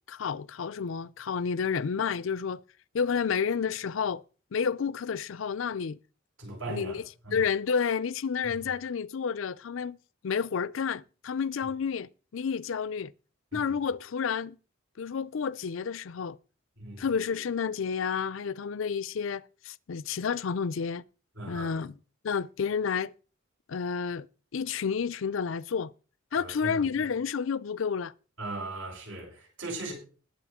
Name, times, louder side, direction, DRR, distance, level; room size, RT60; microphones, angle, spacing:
voice 1, 0.1-2.6 2.9-4.2 4.5-6.0 6.7-7.0 7.3-10.0 10.2-13.1 13.5-14.6 15.0-16.4 17.0-21.0 21.5-21.9 22.2-23.1 23.7-24.3 24.5-25.9 26.3-28.1, left 6 dB, 70° left, 0.5 m, -30 dB
voice 2, 6.4-7.5 13.5-13.7 16.8-17.1 21.3-21.8 26.3-27.1 28.4-29.9, right 2 dB, 75° right, 8.0 m, -39 dB
20.0 x 7.7 x 3.7 m
head